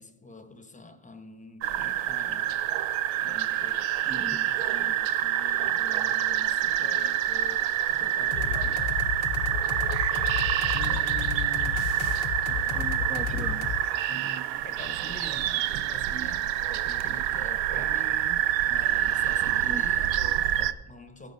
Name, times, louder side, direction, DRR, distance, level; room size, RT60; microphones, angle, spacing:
voice 1, 0.0-2.6 3.2-8.9 10.8-11.1 11.9-12.0 14.1-21.3, left 1 dB, 15° left, 1.0 m, -45 dB
sound 1, 1.6-20.7, right 12 dB, 65° right, 0.6 m, -27 dB
voice 2, 4.1-4.4 10.7-11.8 12.5-13.7 19.6-19.8, right 2 dB, 15° right, 0.7 m, -40 dB
sound 2, 8.3-13.8, left 8 dB, 70° left, 0.8 m, -32 dB
16.0 x 9.2 x 2.7 m
hypercardioid pair, 65°, 49 cm